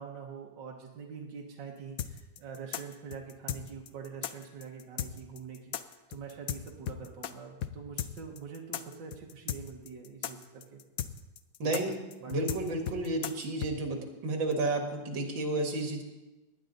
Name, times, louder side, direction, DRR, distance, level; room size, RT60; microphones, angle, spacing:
voice 1, 0.0-10.8 11.6-11.9 12.2-12.3, right 6 dB, 75° right, -1 dB, 2.0 m, -45 dB
sound 1, 2.0-7.3 7.6-7.7 8.0-13.7, left 10 dB, 65° left, 0.9 m, -36 dB
voice 2, 11.6-12.0 12.3-16.0, right 2 dB, 90° right, 3 dB, 2.5 m, -31 dB
18.5 x 11.0 x 4.0 m, 1.1 s
omnidirectional pair, 2.0 m